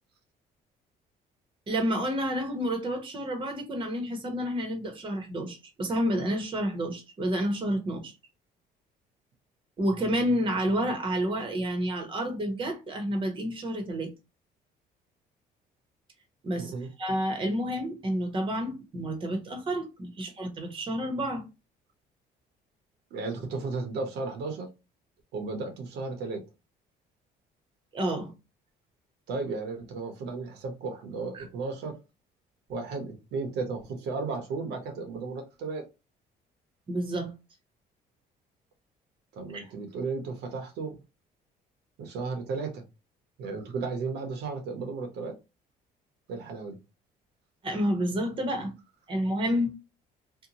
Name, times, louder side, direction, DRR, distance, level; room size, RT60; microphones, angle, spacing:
voice 1, 1.7-8.1 9.8-14.1 16.4-16.7 17.0-21.4 27.9-28.3 31.3-31.4 36.9-37.3 39.5-39.6 47.6-48.7 49.1-49.7, equal, 30° right, 0.8 m, -29 dB
voice 2, 16.5-16.9 23.1-24.7 25.3-26.4 29.3-32.0 32.7-35.8 39.3-41.0 42.0-42.8 43.4-45.3 46.3-46.8, right 4 dB, 80° right, 0.8 m, -34 dB
2.7 x 2.1 x 2.8 m
cardioid pair, 110°, 17 cm